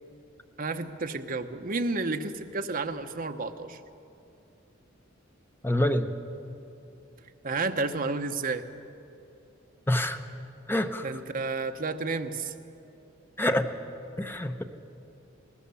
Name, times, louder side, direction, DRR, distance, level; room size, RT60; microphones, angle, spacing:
voice 1, 0.6-3.8 7.4-8.6 11.0-12.5, right 3 dB, 45° right, 6 dB, 0.9 m, -31 dB
voice 2, 5.6-6.1 9.9-10.2 10.7-11.1 13.4-13.7 14.2-14.6, left 1 dB, 10° left, 7 dB, 0.8 m, -26 dB
20.5 x 18.5 x 7.0 m, 2.7 s
head